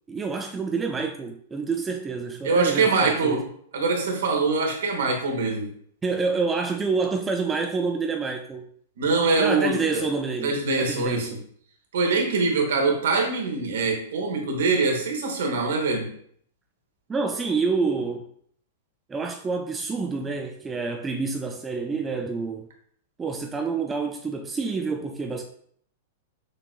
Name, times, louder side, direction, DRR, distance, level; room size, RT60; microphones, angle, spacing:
voice 1, 0.1-3.5 6.0-8.7 9.4-11.4 17.1-18.3 19.1-22.7 23.2-25.4, right 4 dB, 15° right, 0.4 m, -28 dB
voice 2, 2.4-3.4 3.7-5.7 9.0-10.1 10.4-11.4 11.9-16.1, right 3 dB, 60° right, 1.2 m, -23 dB
6.4 x 3.1 x 2.5 m
figure-of-eight pair, 100°, 0 cm